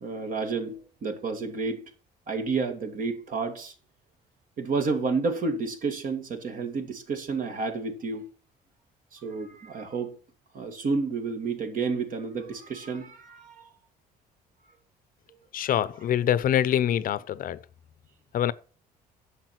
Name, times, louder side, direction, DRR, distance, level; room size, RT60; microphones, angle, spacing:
voice 1, 0.0-1.8 2.3-3.7 4.6-8.3 9.1-10.1 10.5-13.7, right 4 dB, 55° right, 2.6 m, -30 dB
voice 2, 15.5-17.6 18.3-18.5, left 10 dB, 55° left, 0.7 m, -25 dB
10.5 x 7.3 x 6.1 m
cardioid pair, 110°, 17 cm